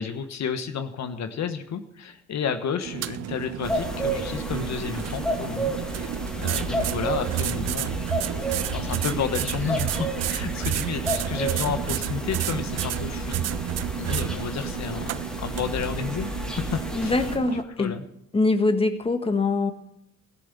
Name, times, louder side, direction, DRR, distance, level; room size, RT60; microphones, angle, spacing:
voice 1, 0.0-6.1 6.4-8.3 8.7-13.4 14.0-16.6 17.0-17.1 17.8-18.0, left 7 dB, 65° left, 8 dB, 1.3 m, -31 dB
sound 1, 2.8-17.6, right 13 dB, 60° right, 0.4 m, -31 dB
sound 2, 3.6-17.4, right 1 dB, 5° left, 2.6 m, -31 dB
voice 2, 16.9-18.0 18.3-19.7, left 3 dB, 20° left, 7 dB, 1.5 m, -23 dB
14.5 x 7.7 x 8.3 m, 0.82 s
cardioid pair, 90°, 30 cm